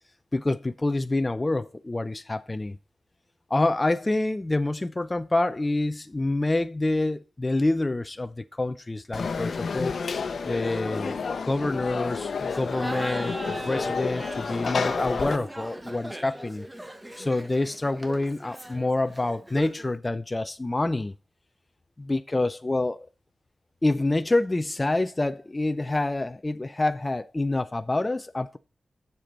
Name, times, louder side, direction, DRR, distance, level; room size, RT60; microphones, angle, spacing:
voice 1, 0.3-2.8 3.5-10.0 10.4-16.7 17.2-21.1 22.0-23.1 23.8-28.6, left 2 dB, 20° left, 0.6 m, -27 dB
Conversation / Crowd, 9.1-15.4, left 5 dB, 65° left, 1.0 m, -30 dB
Laughter, 12.4-19.9, right 1 dB, 15° right, 1.2 m, -37 dB
7.5 x 6.9 x 5.1 m
wide cardioid pair, 115°, 0 cm